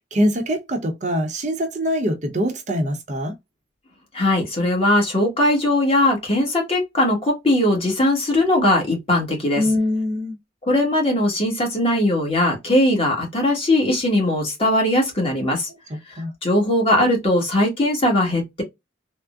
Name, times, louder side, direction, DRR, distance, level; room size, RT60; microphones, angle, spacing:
voice 1, 0.1-3.3 9.6-10.4 15.7-16.3, equal, 40° right, 0.7 m, -23 dB
voice 2, 4.1-9.6 10.6-15.7 16.1-18.6, left 1 dB, 30° left, 1.2 m, -20 dB
3.5 x 2.1 x 2.3 m
head